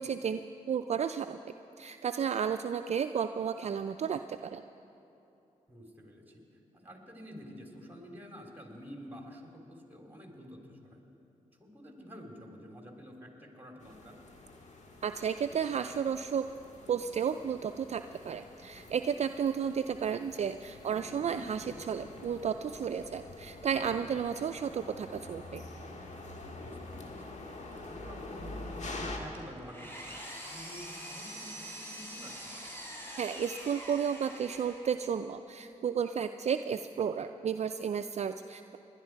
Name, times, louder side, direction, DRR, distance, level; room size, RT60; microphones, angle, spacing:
voice 1, 0.0-1.4 1.8-4.6 15.0-16.5 16.9-25.6 33.2-38.8, right 7 dB, 50° right, 9 dB, 0.4 m, -33 dB
voice 2, 5.7-11.0 11.6-14.2 23.7-24.0 26.6-27.3 27.7-32.5, equal, 15° right, 1 dB, 3.1 m, -49 dB
sound 1, 13.8-29.2, left 2 dB, 55° left, 1.7 m, -46 dB
Engine, 29.3-35.1, equal, 15° left, 3.9 m, -44 dB
19.5 x 11.0 x 4.6 m, 2.9 s
supercardioid pair, 50°, 14 cm